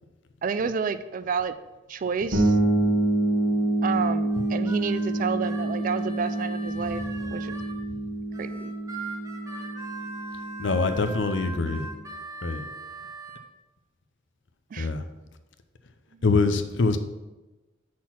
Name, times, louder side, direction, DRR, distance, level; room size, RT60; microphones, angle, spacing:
voice 1, 0.4-1.5 1.9-2.6 3.8-7.0 7.3-7.6 8.4-8.7 14.7-14.9 16.2-16.3, right 5 dB, 45° right, 12 dB, 0.3 m, -30 dB
sound 1, 2.3-11.9, right 2 dB, 80° right, 1.6 m, -27 dB
Harmonica, 4.3-7.8 8.3-13.4, right 3 dB, 20° right, 0.9 m, -41 dB
voice 2, 10.6-11.9 12.4-12.6 14.8-15.0 16.2-17.0, left 3 dB, 70° left, 9 dB, 0.6 m, -24 dB
6.1 x 4.3 x 5.8 m, 1.1 s
head